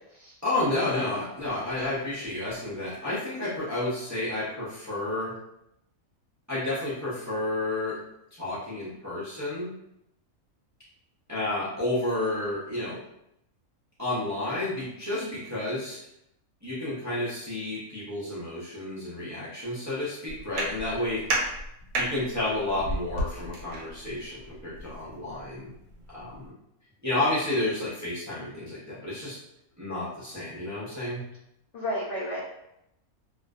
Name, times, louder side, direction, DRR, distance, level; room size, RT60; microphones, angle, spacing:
voice 1, 0.4-5.3 6.5-8.0 8.3-9.7 11.3-13.0 14.0-16.0 16.6-21.2 22.0-25.7 26.1-26.5 27.0-29.4 29.8-31.2, left 2 dB, 25° right, -10 dB, 0.4 m, -31 dB
sound 1, 20.3-26.5, right 1 dB, 90° right, 1.0 m, -34 dB
voice 2, 31.7-32.4, equal, 75° left, -5 dB, 0.5 m, -32 dB
2.5 x 2.3 x 2.2 m, 0.81 s
omnidirectional pair, 1.5 m